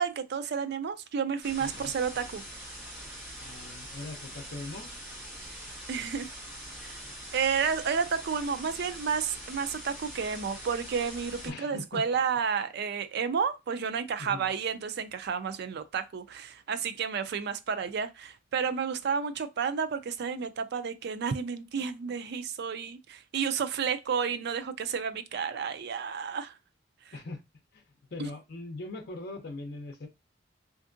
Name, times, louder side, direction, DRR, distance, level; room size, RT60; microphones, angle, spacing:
voice 1, 0.0-2.4 5.4-5.5 5.9-6.3 6.8-7.0 7.3-26.5 27.1-27.2 28.2-28.3, right 6 dB, 60° right, 0.4 m, -31 dB
sound 1, 1.4-11.5, equal, 10° right, 1.5 m, -43 dB
voice 2, 1.6-1.9 3.4-4.9 11.4-12.0 14.2-14.5 27.1-27.4 27.7-27.8 28.1-30.1, left 2 dB, 55° left, 0.6 m, -40 dB
3.4 x 2.6 x 2.5 m
head